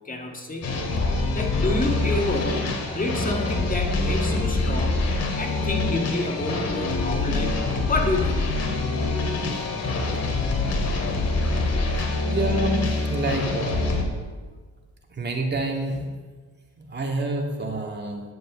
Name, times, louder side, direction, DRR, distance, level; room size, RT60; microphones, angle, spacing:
voice 1, 0.0-0.8 1.3-2.6 2.9-5.0 5.4-8.4, left 2 dB, 30° left, 2 dB, 2.1 m, -28 dB
sound 1, 0.6-14.0, left 3 dB, 55° left, 2.7 m, -25 dB
voice 2, 11.9-12.8 13.1-14.1 15.2-16.0 16.9-18.2, right 2 dB, 35° right, 1 dB, 2.4 m, -27 dB
11.5 x 7.8 x 7.7 m, 1.4 s
cardioid pair, 90°, 30 cm